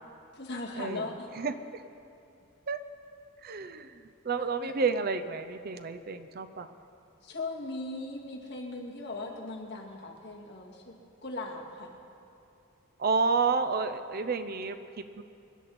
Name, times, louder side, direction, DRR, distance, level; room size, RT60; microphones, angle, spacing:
voice 1, 0.3-1.3 4.6-4.7 7.2-10.9 11.2-11.9, left 2 dB, 55° left, -2 dB, 2.2 m, -38 dB
voice 2, 1.4-1.8 2.7-2.8 3.4-6.7 13.0-15.2, right 4 dB, 45° right, 10 dB, 0.6 m, -30 dB
25.0 x 11.0 x 4.3 m, 2.7 s
head